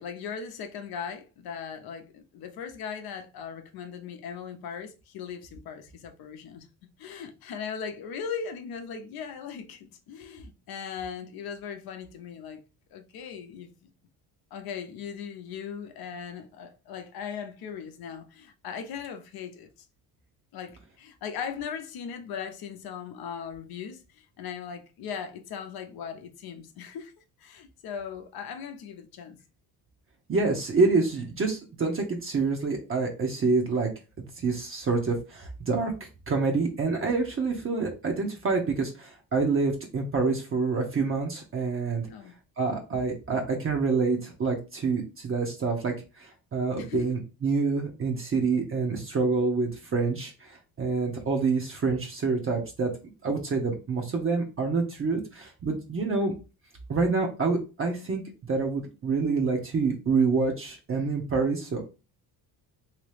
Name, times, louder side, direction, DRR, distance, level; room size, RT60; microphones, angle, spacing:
voice 1, 0.0-6.7 7.0-12.6 12.9-13.9 14.5-19.7 20.5-27.1 27.4-29.4 42.1-42.3 46.8-47.1, left 7 dB, 65° left, 0.7 m, -38 dB
voice 2, 30.3-33.9 34.2-35.9 36.3-42.1 42.6-52.9 53.2-56.3 56.9-58.2 58.5-61.8, right 4 dB, 35° right, 0.8 m, -27 dB
2.9 x 2.9 x 3.3 m
cardioid pair, 105°, 39 cm